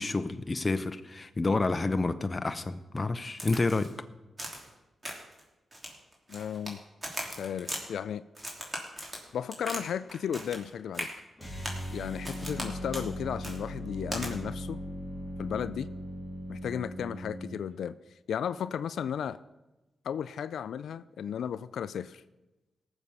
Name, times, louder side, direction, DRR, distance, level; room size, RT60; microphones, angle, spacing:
voice 1, 0.0-3.9, left 3 dB, 30° left, 9 dB, 0.7 m, -29 dB
Crack, 3.4-3.9 4.4-4.7 5.0-5.4 5.7-6.7 7.0-7.8 8.4-9.8 10.1-10.7 10.9-11.1 11.6-11.8 12.2-12.7 12.9-13.1 13.4-13.6 14.1-14.3, right 1 dB, 25° right, 3.0 m, -38 dB
voice 2, 6.3-6.8 7.4-8.2 9.3-11.1 11.9-14.8 15.4-15.9 16.5-17.9 18.3-19.4 20.0-22.2, left 8 dB, 85° left, 14 dB, 0.3 m, -34 dB
sound 1, 11.4-17.6, equal, ahead, 3.8 m, -39 dB
18.0 x 7.1 x 5.5 m, 1.1 s
cardioid pair, 75°, 0 cm